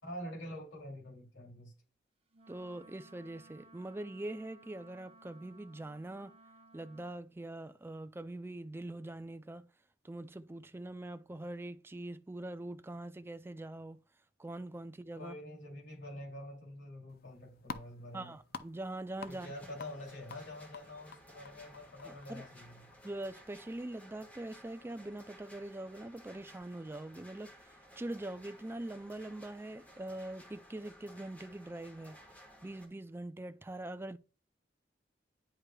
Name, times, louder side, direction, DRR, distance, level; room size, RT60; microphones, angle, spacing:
voice 1, 0.0-1.7 15.1-18.3 19.3-22.8, left 1 dB, 80° left, 2.8 m, -46 dB
Wind instrument woodwind instrument, 2.3-7.2, right 2 dB, 30° right, 1.0 m, -59 dB
voice 2, 2.5-6.4 6.7-9.7 10.0-14.0 14.4-15.4 18.1-19.5 22.0-22.5 23.0-32.2 32.6-34.2, right 1 dB, 10° right, 0.3 m, -43 dB
sound 1, 17.1-23.8, left 5 dB, 55° left, 0.5 m, -51 dB
sound 2, 19.2-32.9, equal, 10° left, 1.4 m, -57 dB
10.0 x 4.9 x 2.3 m
head